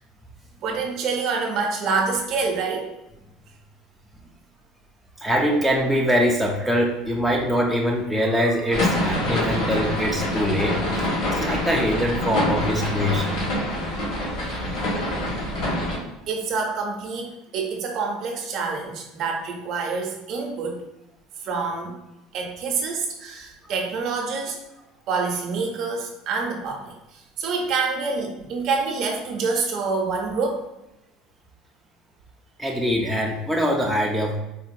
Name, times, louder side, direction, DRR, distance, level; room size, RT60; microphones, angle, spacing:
voice 1, 0.6-2.9 16.3-20.8 21.4-22.0 22.3-24.6 25.1-30.6, right 4 dB, 45° right, 1 dB, 0.6 m, -27 dB
voice 2, 5.2-13.4 32.6-34.4, equal, ahead, 0 dB, 0.3 m, -23 dB
sound 1, 8.7-16.0, left 1 dB, 60° left, 1.3 m, -25 dB
3.8 x 2.1 x 2.6 m, 0.95 s
cardioid pair, 155°, 0 cm